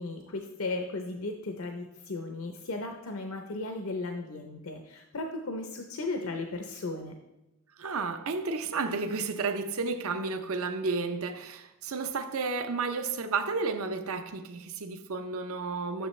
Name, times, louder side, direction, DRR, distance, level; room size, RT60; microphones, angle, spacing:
voice 1, 0.0-7.2, left 2 dB, 70° left, 0.7 m, -36 dB
voice 2, 7.8-16.1, right 4 dB, 70° right, 0.7 m, -32 dB
10.0 x 6.8 x 3.2 m
head